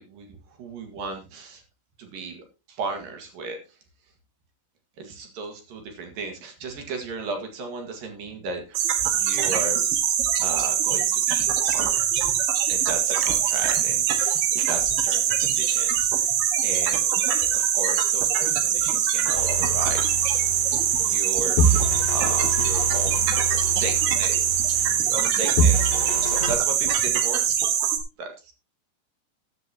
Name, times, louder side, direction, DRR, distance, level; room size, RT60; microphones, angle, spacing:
voice 1, 0.0-1.6 2.0-3.8 5.0-9.8 10.4-12.3 12.7-16.3 16.6-20.4 21.0-27.6 28.2-28.5, right 3 dB, 55° right, 5 dB, 3.2 m, -36 dB
sound 1, 8.8-28.0, right 9 dB, 90° right, 3.9 m, -23 dB
sound 2, 19.3-21.2 21.6-25.3 25.6-26.5, right 1 dB, 65° left, 2.8 m, -26 dB
13.5 x 10.5 x 2.9 m, 0.30 s
omnidirectional pair, 5.3 m